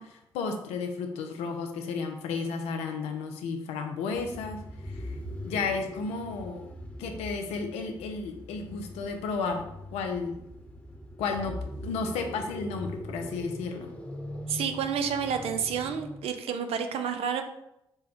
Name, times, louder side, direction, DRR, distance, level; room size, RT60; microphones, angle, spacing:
voice 1, 0.0-5.1 5.4-6.7 7.0-10.4 11.2-13.9, left 4 dB, 80° left, 4 dB, 0.5 m, -33 dB
sound 1, 4.1-16.3, left 1 dB, 10° left, 1.0 m, -41 dB
voice 2, 14.5-17.4, right 7 dB, 70° right, 7 dB, 0.5 m, -30 dB
4.0 x 2.2 x 3.7 m, 0.85 s
hypercardioid pair, 45°, 11 cm